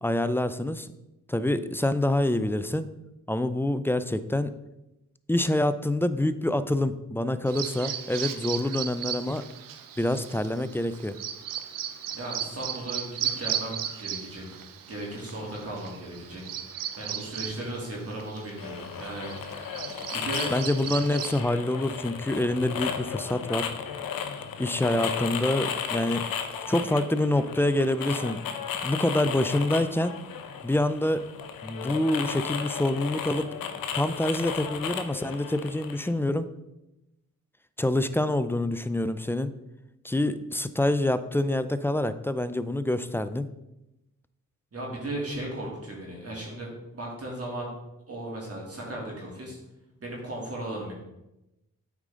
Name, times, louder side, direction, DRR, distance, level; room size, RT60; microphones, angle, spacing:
voice 1, 0.0-0.9 1.3-2.9 3.3-4.5 5.3-9.4 10.0-11.2 20.5-23.7 24.6-26.2 26.7-28.4 28.8-30.1 30.6-31.2 31.6-33.5 33.9-36.5 37.8-39.5 40.0-43.5, left 1 dB, 5° left, 12 dB, 0.4 m, -26 dB
Bird vocalization bird call bird song, 7.5-21.4, right 9 dB, 75° right, 0.7 m, -36 dB
voice 2, 12.1-14.6 14.9-19.6 20.1-20.5 44.7-47.7 48.1-49.6 50.0-50.9, right 1 dB, 45° right, -3 dB, 2.8 m, -36 dB
sound 1, 18.6-36.1, left 7 dB, 90° left, 0.7 m, -35 dB
8.3 x 5.0 x 3.7 m, 0.92 s
cardioid pair, 65°, 33 cm